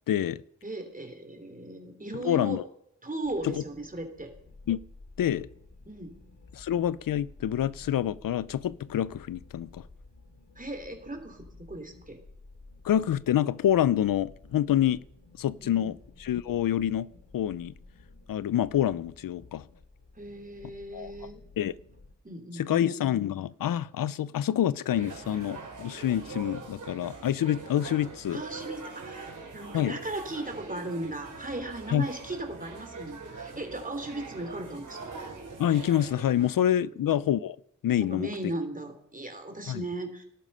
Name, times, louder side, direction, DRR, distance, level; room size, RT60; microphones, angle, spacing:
voice 1, 0.1-0.4 2.2-2.6 3.4-3.6 4.7-4.8 5.2-5.5 6.5-9.8 12.8-15.0 15.4-17.1 17.3-17.7 18.3-19.7 20.9-21.1 21.6-21.7 22.5-28.4 29.7-30.0 31.9-32.0 35.6-37.6 37.8-38.3 39.7-39.8, left 11 dB, 85° left, 0.5 m, -27 dB
voice 2, 0.6-2.6 3.0-4.3 5.9-6.2 10.5-12.2 15.6-15.9 20.1-21.4 22.2-22.9 28.3-35.1 38.0-40.2, right 1 dB, 25° right, 3.1 m, -37 dB
sound 1, 3.2-22.1, left 3 dB, 60° left, 2.9 m, -53 dB
sound 2, 24.9-36.5, right 4 dB, 65° right, 4.2 m, -43 dB
18.5 x 12.5 x 5.5 m
wide cardioid pair, 80°, 33 cm